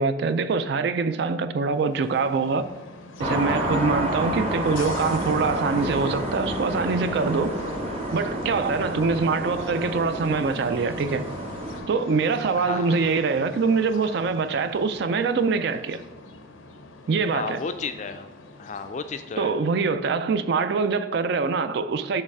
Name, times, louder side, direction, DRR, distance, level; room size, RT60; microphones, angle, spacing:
voice 1, 0.0-2.6 3.2-7.5 8.1-11.2 11.9-16.0 17.1-17.6 19.4-22.2, right 4 dB, 55° right, 0.3 m, -24 dB
sound 1, 1.6-19.7, left 3 dB, 85° left, 0.6 m, -44 dB
sound 2, 3.2-11.8, equal, 30° right, 0.9 m, -29 dB
voice 2, 12.6-13.1 17.3-18.3 18.6-19.6, left 5 dB, 35° left, 0.3 m, -33 dB
6.5 x 3.2 x 4.7 m
head